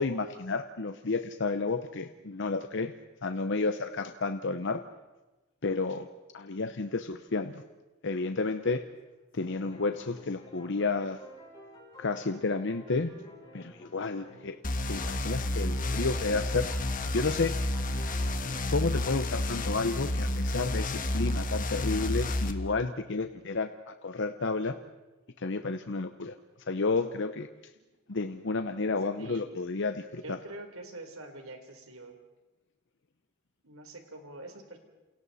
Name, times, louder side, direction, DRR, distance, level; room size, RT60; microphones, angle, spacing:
voice 1, 0.0-2.9 3.2-4.8 5.6-6.1 6.3-7.6 8.0-8.8 9.3-11.2 12.0-13.1 13.5-14.6 14.9-16.7 17.1-17.6 18.7-24.8 25.4-26.3 26.7-27.5 28.1-30.4, left 3 dB, 60° left, 8 dB, 0.8 m, -31 dB
sound 1, 8.3-9.2 9.5-14.6 15.0-19.3, left 1 dB, 20° left, 6.6 m, -51 dB
sound 2, 14.6-22.5, left 1 dB, 40° left, 1.4 m, -30 dB
voice 2, 29.2-29.5 30.2-32.2 33.6-34.8, right 2 dB, 85° right, 5 dB, 3.7 m, -45 dB
28.5 x 28.0 x 4.2 m, 1.1 s
head